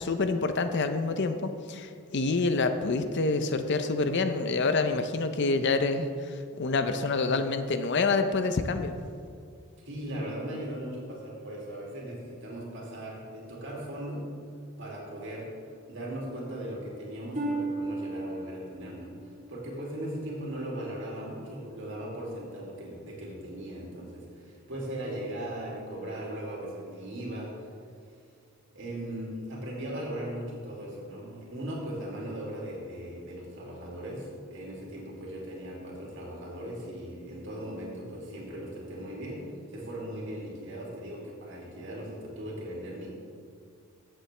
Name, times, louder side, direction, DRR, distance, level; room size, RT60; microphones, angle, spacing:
voice 1, 0.0-9.0, left 3 dB, 50° left, 9 dB, 0.6 m, -27 dB
voice 2, 9.9-14.3 14.8-15.5 15.9-19.2 19.5-27.7 28.7-43.1, right 1 dB, 55° right, -3 dB, 2.5 m, -38 dB
Harp, 17.3-21.1 21.6-22.0 22.7-22.8, right 2 dB, 35° right, 2.3 m, -37 dB
15.0 x 7.8 x 3.3 m, 2.3 s
head